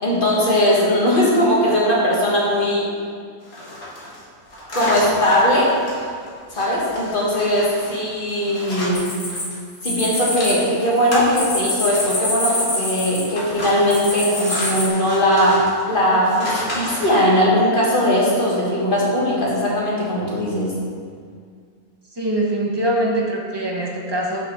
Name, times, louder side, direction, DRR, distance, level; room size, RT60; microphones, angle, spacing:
voice 1, 0.0-2.9 4.7-5.7 6.5-9.1 9.8-15.6 15.9-20.7, equal, 35° left, -5 dB, 1.7 m, -19 dB
sound 1, 3.4-9.6 9.8-17.3, equal, 60° left, 2.2 m, -32 dB
sound 2, 8.9-10.5 10.8-13.4 13.9-14.9, left 1 dB, 75° left, 2.5 m, -25 dB
voice 2, 22.1-24.4, right 1 dB, 20° right, -2 dB, 0.8 m, -23 dB
6.0 x 5.8 x 5.3 m, 2.1 s
omnidirectional pair, 1.5 m